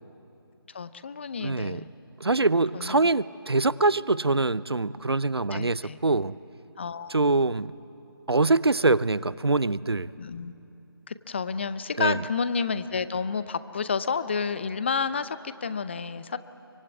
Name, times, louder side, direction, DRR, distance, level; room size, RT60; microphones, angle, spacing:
voice 1, 0.7-1.9 2.7-3.0 5.5-6.0 6.8-7.5 10.2-10.5 11.1-16.4, left 5 dB, 25° left, 14 dB, 0.6 m, -30 dB
voice 2, 1.4-1.8 2.2-6.4 7.1-7.7 8.3-10.1 12.0-12.2, right 3 dB, 75° right, 19 dB, 0.6 m, -24 dB
25.0 x 24.0 x 9.4 m, 2.8 s
figure-of-eight pair, 150°, 13 cm